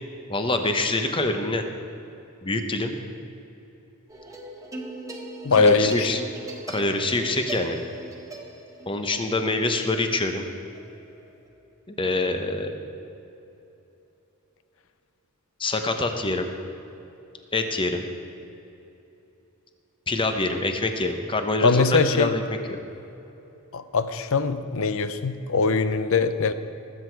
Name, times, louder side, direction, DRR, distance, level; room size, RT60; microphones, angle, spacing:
voice 1, 0.3-1.6 2.4-2.9 5.6-6.2 6.7-7.8 8.9-10.5 11.9-12.7 15.6-16.5 17.5-18.0 20.1-22.4, left 2 dB, 25° left, 6 dB, 0.9 m, -25 dB
sound 1, 4.1-11.5, right 2 dB, 15° right, 1.2 m, -40 dB
voice 2, 5.4-6.2 21.6-22.3 23.7-26.5, left 4 dB, 70° left, 11 dB, 0.7 m, -21 dB
19.5 x 8.0 x 4.6 m, 3.0 s
head